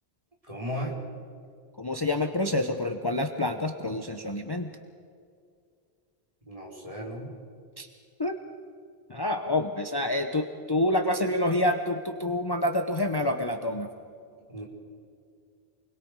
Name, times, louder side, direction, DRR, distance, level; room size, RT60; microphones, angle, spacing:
voice 1, 0.5-1.0 6.5-7.3 14.5-14.7, equal, 35° right, -3 dB, 4.0 m, -35 dB
voice 2, 1.8-4.7 7.8-7.9 8.2-8.4 9.1-13.9, left 1 dB, 25° left, 5 dB, 0.9 m, -27 dB
28.5 x 21.0 x 4.8 m, 2.2 s
omnidirectional pair, 1.1 m